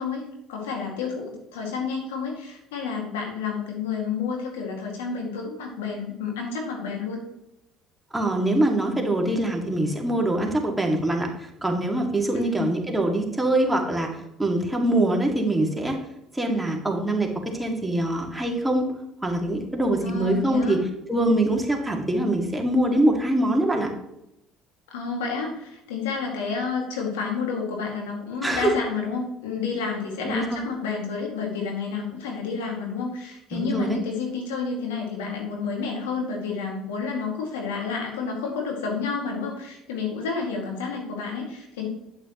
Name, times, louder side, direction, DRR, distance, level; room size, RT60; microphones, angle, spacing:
voice 1, 0.0-7.2 12.3-12.6 20.0-20.8 24.9-41.9, left 5 dB, 85° left, 0 dB, 2.1 m, -30 dB
voice 2, 8.1-14.1 14.4-16.0 16.3-18.9 19.2-20.8 21.1-23.9 28.4-28.7 30.3-30.6 33.5-34.0, right 1 dB, 10° right, 1 dB, 2.0 m, -24 dB
8.8 x 8.1 x 3.0 m, 0.87 s
hypercardioid pair, 70°, 0 cm